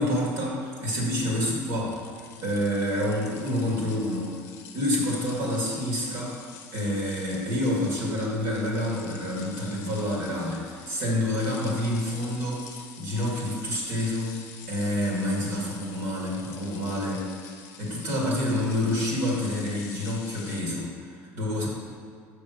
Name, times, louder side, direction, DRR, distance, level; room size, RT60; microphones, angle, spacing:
voice 1, 0.0-1.9 2.4-4.4 4.7-6.3 6.7-14.4 14.7-17.3 17.8-21.7, left 1 dB, 55° right, -3 dB, 2.0 m, -28 dB
sound 1, 1.9-20.6, left 7 dB, 45° left, 0.8 m, -47 dB
6.0 x 5.8 x 5.1 m, 2.2 s
cardioid pair, 170°, 7 cm